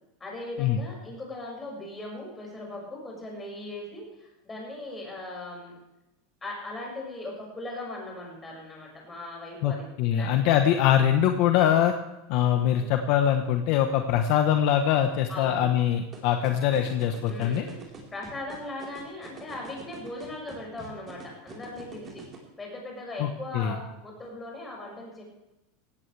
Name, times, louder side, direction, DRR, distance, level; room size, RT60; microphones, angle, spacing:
voice 1, 0.2-5.7 6.4-9.9 10.2-10.4 12.8-13.0 15.3-15.7 17.3-17.8 18.1-22.2 22.6-25.2, left 2 dB, 15° left, -2 dB, 6.3 m, -39 dB
voice 2, 10.0-11.9 12.3-17.6 23.2-23.7, left 10 dB, 50° left, 6 dB, 1.2 m, -23 dB
sound 1, 16.1-22.4, right 5 dB, 25° right, 4.3 m, -44 dB
17.5 x 15.5 x 3.4 m, 0.96 s
supercardioid pair, 155°, 0 cm